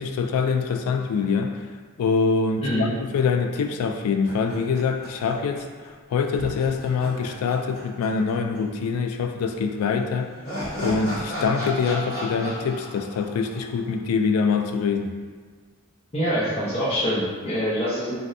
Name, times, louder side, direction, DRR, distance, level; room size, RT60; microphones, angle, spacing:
voice 1, 0.0-1.7 2.0-10.3 10.8-15.1, left 5 dB, 85° left, 5 dB, 0.3 m, -24 dB
sound 1, 4.2-5.6 5.8-5.9 6.3-8.6 8.8-8.9 9.9-14.3, equal, 45° left, 1.1 m, -34 dB
voice 2, 16.1-18.2, equal, 30° left, -8 dB, 0.7 m, -25 dB
3.1 x 2.5 x 2.6 m, 1.6 s
head